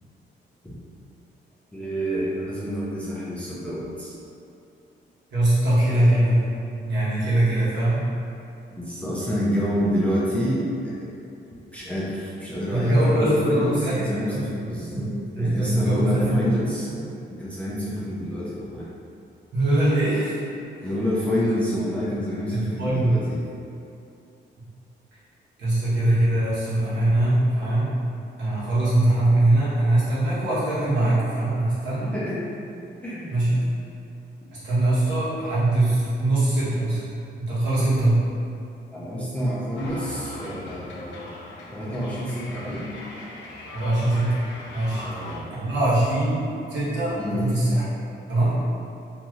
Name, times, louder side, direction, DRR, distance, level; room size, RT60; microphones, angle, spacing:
voice 1, 1.7-4.1 8.8-11.1 11.7-16.9 17.3-18.9 20.8-23.4 32.1-32.5 33.0-33.4 38.9-41.3 41.7-42.9 45.0-45.4 47.2-47.5, equal, 5° left, -9 dB, 0.4 m, -28 dB
voice 2, 5.3-6.4 6.8-8.0 12.7-14.5 15.3-16.4 16.9-17.0 19.5-20.3 20.8-20.9 22.5-23.2 25.6-28.0 28.4-32.1 33.3-33.7 34.5-37.0 37.4-38.2 43.7-44.4 44.7-45.0 45.5-46.4 46.7-47.8 48.3-48.6, right 1 dB, 75° right, -10 dB, 1.1 m, -22 dB
sound 1, 39.8-45.4, left 2 dB, 85° left, 0.5 m, -40 dB
3.0 x 2.6 x 2.4 m, 2.7 s
cardioid pair, 170°, 19 cm